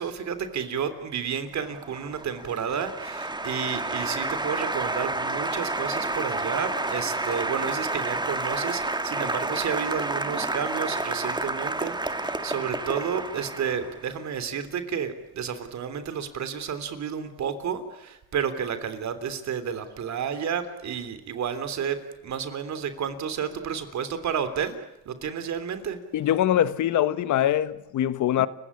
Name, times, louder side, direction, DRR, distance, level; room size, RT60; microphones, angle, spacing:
voice 1, 0.0-22.0 22.2-24.8 25.0-26.0, right 7 dB, 65° right, 3.4 m, -31 dB
Applause, 1.6-14.1, right 2 dB, 15° right, 1.7 m, -30 dB
voice 2, 26.1-28.5, left 11 dB, 75° left, 1.4 m, -23 dB
29.5 x 16.5 x 9.9 m
cardioid pair, 90°, 30 cm